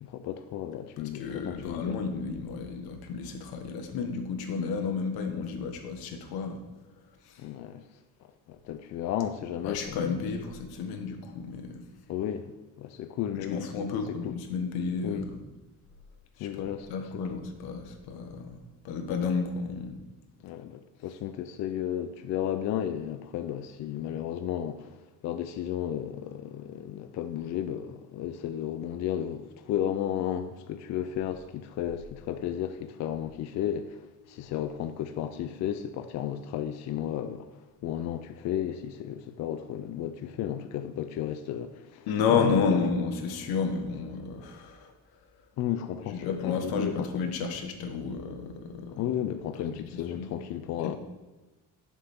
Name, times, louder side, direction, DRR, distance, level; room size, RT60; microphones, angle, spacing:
voice 1, 0.0-2.0 7.4-7.8 8.5-10.2 12.1-12.5 12.8-13.7 13.9-14.0 14.2-14.3 15.0-15.3 16.4-16.9 20.4-37.5 37.8-42.8 45.6-47.1 49.0-51.0, left 10 dB, 50° left, 0.5 m, -33 dB
voice 2, 1.0-6.6 7.2-7.4 9.6-11.8 13.3-15.4 16.4-18.6 18.8-20.0 42.1-44.9 46.1-49.0 49.6-50.3 50.8-51.0, left 5 dB, 90° left, 1.4 m, -31 dB
11.0 x 7.2 x 3.6 m
cardioid pair, 160°, 35 cm